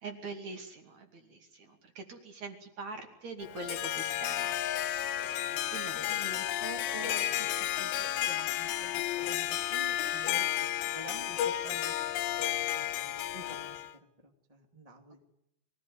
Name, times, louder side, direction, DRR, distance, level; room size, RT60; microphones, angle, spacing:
voice 1, 0.0-4.5 5.3-6.1, right 3 dB, 45° right, 5 dB, 3.2 m, -44 dB
Harp, 3.4-13.9, left 13 dB, 75° left, 3.0 m, -32 dB
voice 2, 6.1-7.9 8.3-11.9 12.2-13.8 14.2-15.2, right 1 dB, 15° right, 3 dB, 1.4 m, -48 dB
23.5 x 16.0 x 9.6 m, 0.79 s
omnidirectional pair, 5.3 m